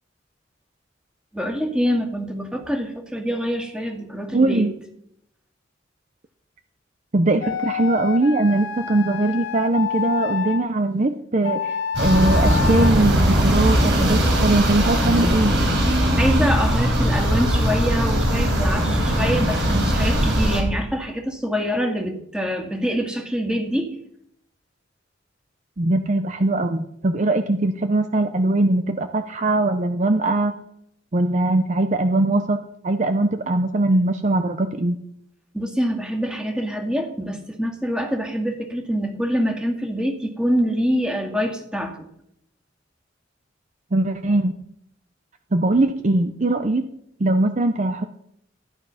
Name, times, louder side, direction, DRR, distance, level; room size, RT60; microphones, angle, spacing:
voice 1, 1.3-4.7 16.1-23.9 35.5-42.0, equal, 5° right, 3 dB, 2.1 m, -25 dB
voice 2, 4.3-4.7 7.1-15.5 25.8-30.6 31.1-35.0 43.9-44.5 45.5-46.8 47.2-48.1, right 2 dB, 40° right, 8 dB, 0.6 m, -21 dB
sound 1, 7.4-10.6 11.4-12.9, left 7 dB, 65° left, 1.0 m, -28 dB
sound 2, 11.9-20.6, equal, 65° right, 4.6 m, -19 dB
14.5 x 9.6 x 5.7 m, 0.74 s
head